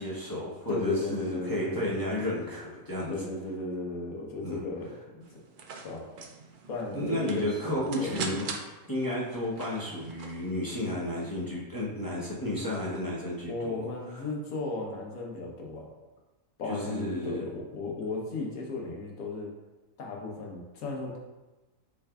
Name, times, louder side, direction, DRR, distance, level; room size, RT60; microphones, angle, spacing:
voice 1, 0.0-3.1 4.4-4.6 6.9-8.4 8.9-13.8 14.1-14.3 16.7-17.5, left 1 dB, 20° left, -6 dB, 0.6 m, -32 dB
voice 2, 0.7-2.0 3.1-5.4 5.8-6.0 6.7-8.2 13.4-15.9 16.6-19.5 20.0-21.2, left 3 dB, 85° left, -1 dB, 1.4 m, -35 dB
sound 1, 5.2-10.5, right 4 dB, 75° right, 0.4 m, -41 dB
6.9 x 3.3 x 2.3 m, 1.1 s
omnidirectional pair, 1.5 m